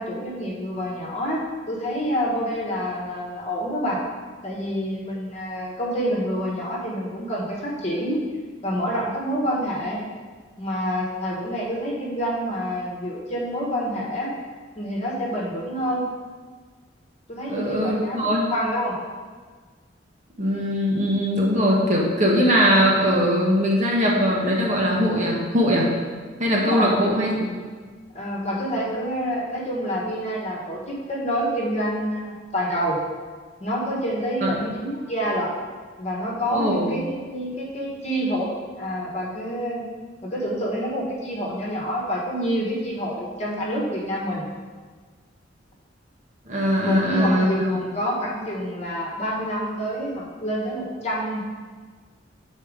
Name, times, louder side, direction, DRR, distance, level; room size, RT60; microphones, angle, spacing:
voice 1, 0.0-4.0 4.4-8.2 8.6-10.0 10.6-14.3 14.7-16.1 17.3-19.0 26.2-26.9 28.1-33.0 33.6-35.5 36.0-39.8 40.2-44.4 46.8-51.4, equal, 35° left, -3 dB, 1.3 m, -27 dB
voice 2, 17.5-18.5 20.4-25.9 26.4-27.5 34.4-34.5 36.5-36.9 46.5-47.5, equal, 40° right, -3 dB, 1.2 m, -21 dB
6.8 x 4.3 x 5.0 m, 1.5 s
head